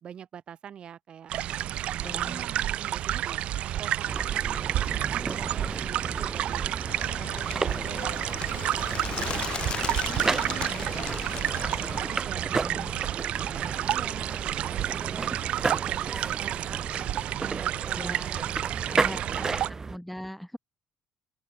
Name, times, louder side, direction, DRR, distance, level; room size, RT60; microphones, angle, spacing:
voice 1, 0.0-1.3 1.9-6.6 7.2-8.6 9.2-11.6 12.0-12.4 13.1-16.8 17.4-18.4 18.9-19.8, right 8 dB, 50° right, 2.6 m, -45 dB
sound 1, 1.3-19.7, right 12 dB, 70° right, 0.6 m, -30 dB
voice 2, 2.0-2.5 9.1-9.3 12.5-13.0 17.9-18.4 18.9-19.5 19.9-20.6, equal, ahead, 0.9 m, -40 dB
sound 2, 4.1-20.0, right 4 dB, 25° right, 0.8 m, -34 dB
Bird, 6.9-12.2, left 8 dB, 50° left, 2.2 m, -37 dB
open air
cardioid pair, 115°, 2 cm